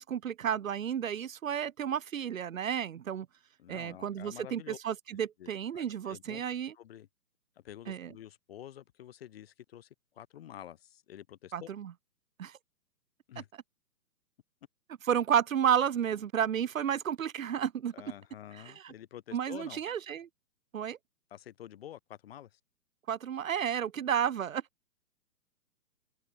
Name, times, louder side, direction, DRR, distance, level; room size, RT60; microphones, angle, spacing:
voice 1, 0.0-3.3 3.7-6.7 7.9-8.1 11.5-11.9 12.4-12.6 15.1-17.9 18.6-18.9 19.3-20.3 20.7-21.0 23.1-24.6, right 9 dB, 55° right, 1.7 m, -32 dB
voice 2, 3.6-4.8 5.4-6.4 6.7-7.1 7.6-9.9 10.1-11.7 13.3-13.5 17.9-19.8 21.3-22.6, left 11 dB, 35° left, 2.6 m, -48 dB
hypercardioid pair, 165°, 50 cm